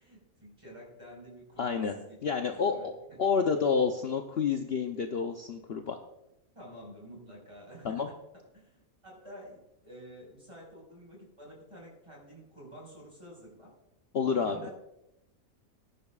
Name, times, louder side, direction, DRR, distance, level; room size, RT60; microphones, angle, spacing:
voice 1, 0.0-3.6 5.1-5.2 6.5-13.7 14.2-14.7, equal, 20° right, -2 dB, 5.2 m, -50 dB
voice 2, 1.6-1.9 2.2-2.9 3.2-6.0 7.8-8.1 14.1-14.6, left 6 dB, 50° left, 4 dB, 0.9 m, -29 dB
19.5 x 10.5 x 2.4 m, 0.86 s
omnidirectional pair, 1.5 m